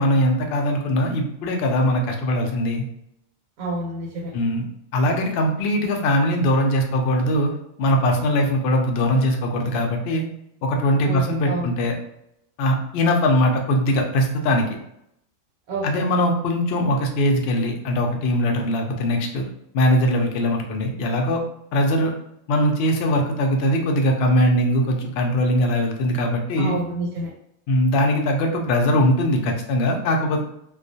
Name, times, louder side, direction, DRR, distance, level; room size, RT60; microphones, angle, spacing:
voice 1, 0.0-2.9 4.3-4.6 4.9-7.5 7.8-10.3 10.6-12.0 12.6-14.7 15.8-19.4 19.7-21.4 21.7-22.1 22.5-26.7 27.7-30.4, equal, 65° left, 2 dB, 0.6 m, -21 dB
voice 2, 3.6-4.3 11.0-11.7 15.7-16.1 26.6-27.3, right 1 dB, 90° right, -3 dB, 1.1 m, -28 dB
2.3 x 2.2 x 2.6 m, 0.76 s
omnidirectional pair, 1.5 m